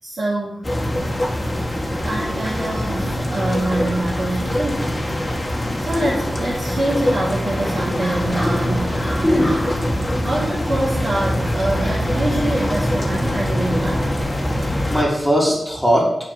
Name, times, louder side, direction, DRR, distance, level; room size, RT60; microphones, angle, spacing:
voice 1, 0.0-0.7 2.0-4.9 5.8-9.6 10.2-14.1, right 1 dB, 65° right, -10 dB, 3.5 m, -25 dB
sound 1, 0.6-15.0, left 1 dB, 20° left, 1.9 m, -23 dB
voice 2, 9.0-10.3 14.9-16.1, equal, ahead, -4 dB, 3.4 m, -20 dB
7.4 x 6.1 x 7.1 m, 0.85 s
cardioid pair, 55°, 0 cm